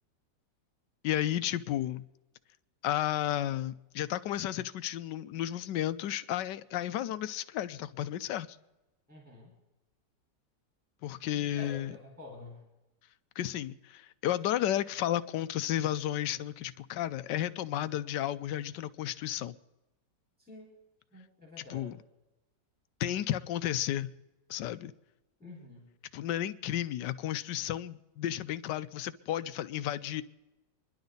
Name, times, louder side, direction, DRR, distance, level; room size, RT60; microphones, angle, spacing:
voice 1, 1.0-2.0 2.8-8.5 11.0-11.9 13.4-19.5 21.6-22.0 23.0-24.1 24.5-24.9 26.1-30.2, left 12 dB, 75° left, 1.3 m, -33 dB
voice 2, 9.1-9.5 11.3-12.7 20.4-20.7 21.1-21.9 25.4-25.9, left 2 dB, 5° right, 4.6 m, -48 dB
26.5 x 11.5 x 4.0 m
omnidirectional pair, 1.9 m